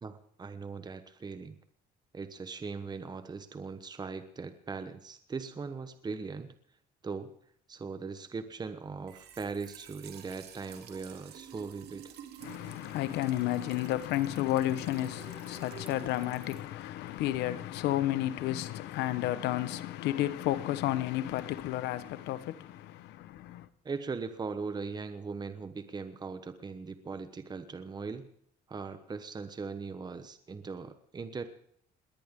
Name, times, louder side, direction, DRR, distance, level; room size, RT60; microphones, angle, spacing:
voice 1, 0.0-1.6 2.1-6.5 7.0-7.3 7.7-12.1 23.8-28.3 28.7-31.4, right 4 dB, 25° right, 1.1 m, -39 dB
Trickle dribble / Fill (with liquid), 8.9-17.7, right 8 dB, 75° right, 2.8 m, -51 dB
voice 2, 12.4-23.7, left 14 dB, 85° left, 1.2 m, -32 dB
20.5 x 18.0 x 3.8 m
cardioid pair, 110°, 17 cm